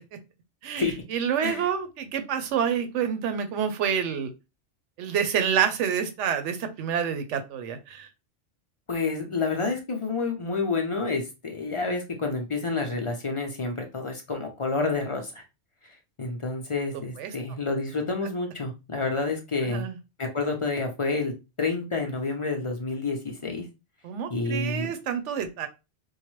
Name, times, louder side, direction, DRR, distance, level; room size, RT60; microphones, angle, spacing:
voice 1, 0.6-4.3 5.0-8.1 17.2-17.3 19.6-20.0 24.0-25.7, right 8 dB, 80° right, 8 dB, 1.0 m, -28 dB
voice 2, 8.9-15.4 16.2-19.9 20.2-21.3 21.6-23.7 24.3-24.9, left 3 dB, 40° left, 3 dB, 0.5 m, -29 dB
4.6 x 2.1 x 3.1 m, 0.27 s
omnidirectional pair, 1.2 m